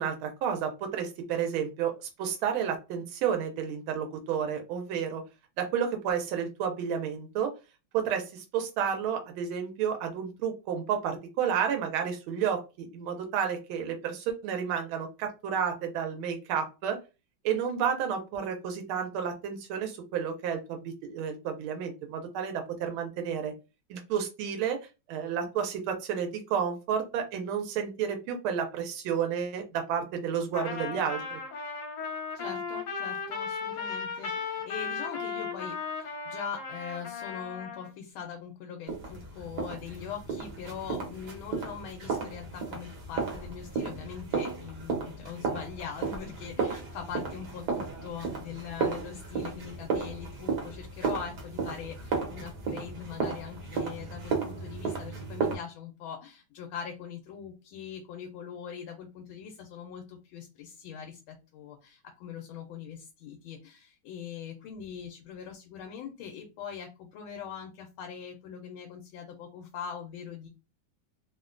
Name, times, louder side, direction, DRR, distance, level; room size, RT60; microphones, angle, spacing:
voice 1, 0.0-1.9 2.2-5.2 5.6-7.5 7.9-17.0 17.4-23.5 23.9-24.8 25.1-31.4, right 7 dB, 90° right, 5 dB, 1.5 m, -31 dB
Trumpet, 30.5-37.9, left 5 dB, 65° left, 1.4 m, -36 dB
voice 2, 32.3-70.5, left 7 dB, 85° left, 3 dB, 1.4 m, -42 dB
sound 1, 38.9-55.5, right 4 dB, 65° right, 1.3 m, -34 dB
3.4 x 2.1 x 2.4 m, 0.29 s
omnidirectional pair, 2.2 m